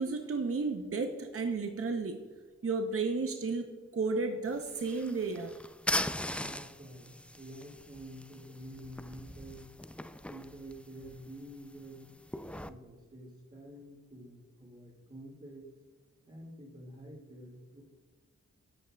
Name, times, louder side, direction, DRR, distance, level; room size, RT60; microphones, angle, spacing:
voice 1, 0.0-2.2 2.6-5.5, right 4 dB, 45° right, 5 dB, 0.7 m, -33 dB
sound 1, 4.4-12.7, left 1 dB, 5° left, 0.3 m, -40 dB
voice 2, 6.3-9.7 10.3-12.1 12.7-15.7 16.3-17.8, right 1 dB, 30° right, -6 dB, 1.9 m, -49 dB
11.0 x 6.5 x 2.3 m, 1.4 s
cardioid pair, 55°, 30 cm